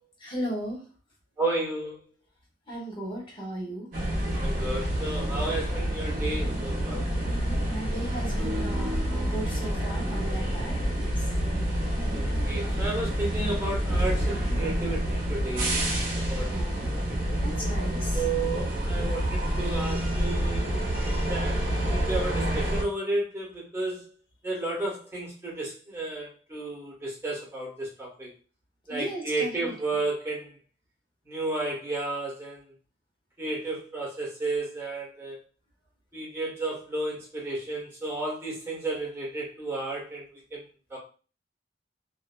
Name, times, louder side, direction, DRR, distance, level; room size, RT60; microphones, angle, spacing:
voice 1, 0.2-0.9 2.7-3.9 7.7-11.2 16.4-16.9 17.4-18.2 28.9-29.7, right 1 dB, 30° left, -3 dB, 1.2 m, -36 dB
voice 2, 1.4-2.0 4.4-7.0 12.1-15.8 16.1-16.7 18.1-20.8 21.3-24.1 24.4-28.3 28.9-30.5 31.2-32.6 33.4-35.4 36.1-40.6 40.9-41.0, right 2 dB, 15° right, -5 dB, 1.3 m, -32 dB
sound 1, 3.9-22.8, right 1 dB, 50° right, 0.9 m, -28 dB
2.7 x 2.6 x 2.2 m, 0.37 s
head